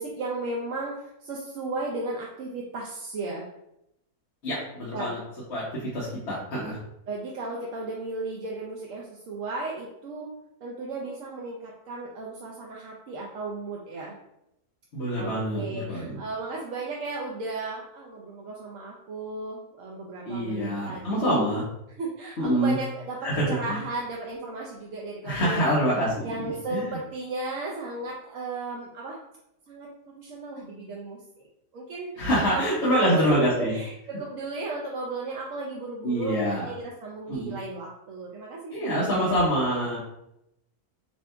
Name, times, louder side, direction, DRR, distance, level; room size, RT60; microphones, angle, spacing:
voice 1, 0.0-3.5 4.9-5.1 7.1-10.3 10.6-14.2 15.1-21.4 22.0-25.8 26.2-29.2 29.7-31.2 31.7-39.5, right 3 dB, 65° right, -3 dB, 1.0 m, -35 dB
voice 2, 4.4-5.2 5.5-6.8 14.9-16.2 20.3-21.6 22.4-22.7 23.2-23.8 25.2-27.0 32.2-33.7 36.0-36.7 37.3-37.6 38.7-40.0, equal, 50° left, -8 dB, 1.2 m, -26 dB
7.2 x 2.7 x 2.2 m, 0.81 s
omnidirectional pair, 1.7 m